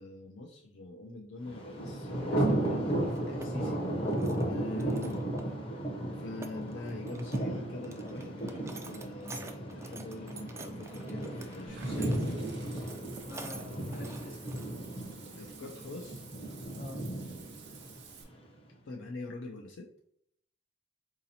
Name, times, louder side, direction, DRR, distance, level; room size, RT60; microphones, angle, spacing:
voice 1, 0.0-5.2 6.2-12.4 15.4-16.2 18.8-19.9, left 2 dB, 80° left, 0 dB, 0.4 m, -44 dB
Thunder, 1.5-18.4, right 1 dB, 30° left, 0.7 m, -35 dB
sound 1, 3.1-3.5 3.9-4.4 4.8-5.5 5.8-5.9 6.2-7.5 7.8-14.7 15.1-15.2 16.6-16.7 17.0-17.2, right 3 dB, 15° right, 0.3 m, -48 dB
Water / Bathtub (filling or washing), 11.6-18.2, right 6 dB, 60° right, 0.6 m, -53 dB
voice 2, 13.2-14.4 16.8-17.1, left 2 dB, 45° left, -1 dB, 1.1 m, -47 dB
3.9 x 2.8 x 2.7 m, 0.70 s
head